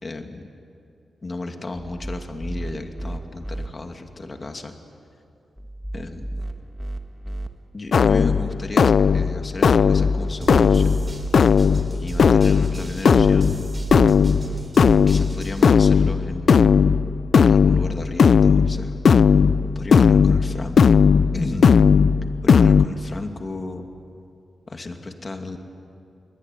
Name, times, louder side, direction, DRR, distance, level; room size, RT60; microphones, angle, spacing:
voice 1, 0.0-0.4 1.2-4.7 5.9-6.3 7.7-11.0 12.0-13.7 15.1-16.8 17.4-19.0 19.7-21.7 22.4-23.9 24.7-25.6, left 2 dB, 40° left, 5 dB, 2.6 m, -33 dB
sound 1, 1.8-3.7 5.6-7.5 9.4-11.3 13.2-15.1, right 1 dB, 5° left, 1.8 m, -33 dB
sound 2, 7.9-22.9, left 6 dB, 65° left, 0.5 m, -17 dB
sound 3, 10.4-15.7, right 3 dB, 30° right, 3.9 m, -33 dB
28.5 x 21.0 x 9.5 m, 2.5 s
cardioid pair, 75°, 0 cm